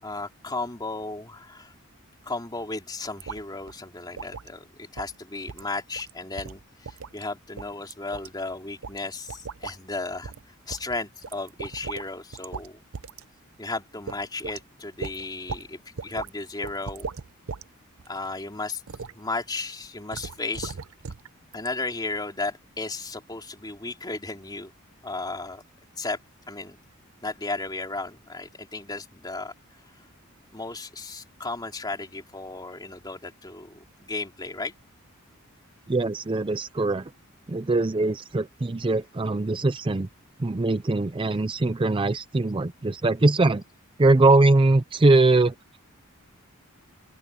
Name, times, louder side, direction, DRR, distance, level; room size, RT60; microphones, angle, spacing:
voice 1, 0.0-1.7 2.2-10.3 10.7-12.8 13.6-17.1 18.1-18.8 19.1-20.8 21.5-24.7 25.0-25.6 26.0-26.2 26.5-26.8 27.2-29.5 30.5-34.7, left 3 dB, 20° left, 3.6 m, -34 dB
sound 1, 3.2-3.4 3.7-3.8 4.2-4.5 5.0-5.2 5.5-5.7 6.0-6.1 6.4-7.2 7.6-8.3 8.8-9.0 9.3-9.8 10.2-10.4 10.7-12.1 12.3-12.7 12.9-13.2 13.6-13.7 14.1-14.6 15.0-15.7 16.0-16.3 16.6-17.6 18.0-18.3 18.9-19.1 20.1-21.3 21.5-21.7, right 5 dB, 75° right, 0.7 m, -37 dB
voice 2, 35.9-37.1 37.5-40.1 40.4-43.6 44.0-45.8, right 2 dB, 25° right, 0.5 m, -22 dB
open air
head